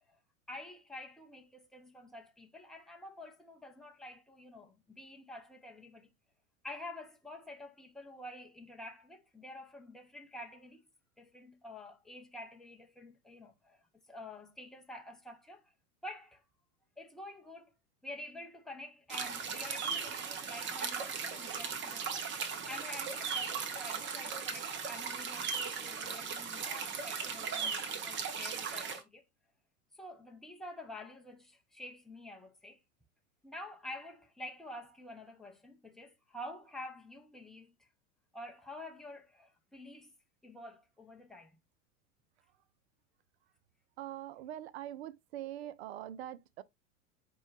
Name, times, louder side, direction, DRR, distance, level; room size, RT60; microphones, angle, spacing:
voice 1, 0.5-6.1 6.6-10.8 11.2-13.8 14.1-15.7 16.0-16.4 17.0-17.7 18.0-29.3 29.9-32.8 33.4-37.9 38.3-40.1 40.4-41.6, left 1 dB, ahead, 0.6 m, -48 dB
sound 1, 19.1-29.0, right 6 dB, 25° right, 0.8 m, -37 dB
voice 2, 44.0-46.6, right 12 dB, 50° right, 0.5 m, -43 dB
4.5 x 2.1 x 4.5 m
figure-of-eight pair, 90°, 41 cm